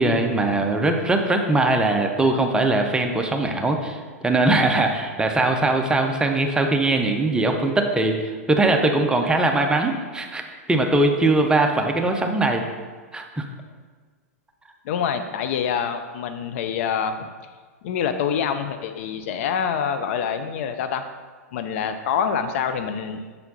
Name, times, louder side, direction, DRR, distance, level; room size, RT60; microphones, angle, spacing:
voice 1, 0.0-10.4 10.7-12.6 13.1-13.4, right 2 dB, 10° right, 3 dB, 0.6 m, -21 dB
voice 2, 14.8-17.3 17.8-21.1 21.5-23.2, left 7 dB, 55° left, 9 dB, 0.4 m, -26 dB
6.8 x 4.2 x 4.1 m, 1.5 s
hypercardioid pair, 100°, 8 cm